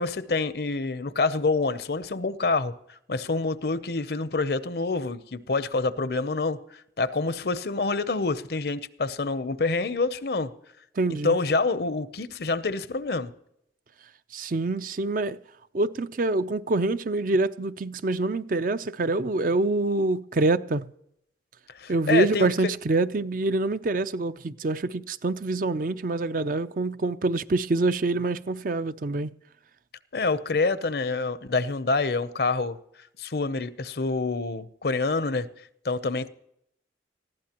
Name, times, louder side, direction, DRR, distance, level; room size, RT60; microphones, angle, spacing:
voice 1, 0.0-2.7 3.1-6.6 7.0-10.5 11.2-13.3 21.8-22.5 30.1-32.8 33.2-35.5 35.8-36.3, left 3 dB, 60° left, 0.7 m, -27 dB
voice 2, 11.0-11.4 14.3-15.4 15.7-20.9 21.9-29.3, right 2 dB, 50° right, 0.5 m, -26 dB
20.0 x 15.0 x 3.0 m
head